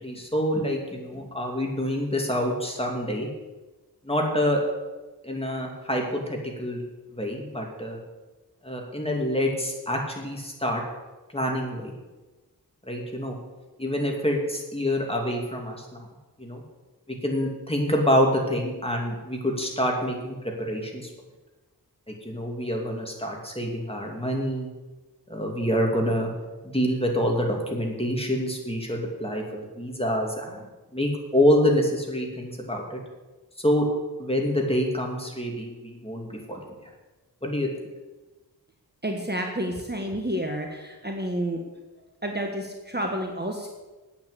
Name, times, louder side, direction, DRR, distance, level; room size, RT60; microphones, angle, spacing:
voice 1, 0.0-3.3 4.0-4.6 5.2-6.8 7.1-8.0 8.6-10.8 11.3-11.9 12.8-13.4 13.8-16.1 16.4-16.6 17.1-21.1 22.1-24.7 25.3-26.3 26.6-33.0 33.6-33.9 34.2-36.6 37.4-37.7, equal, 15° left, 0 dB, 2.8 m, -26 dB
voice 2, 39.0-41.6 42.2-43.7, right 1 dB, 25° right, 1 dB, 1.4 m, -30 dB
9.2 x 8.9 x 8.4 m, 1.2 s
wide cardioid pair, 65°, 40 cm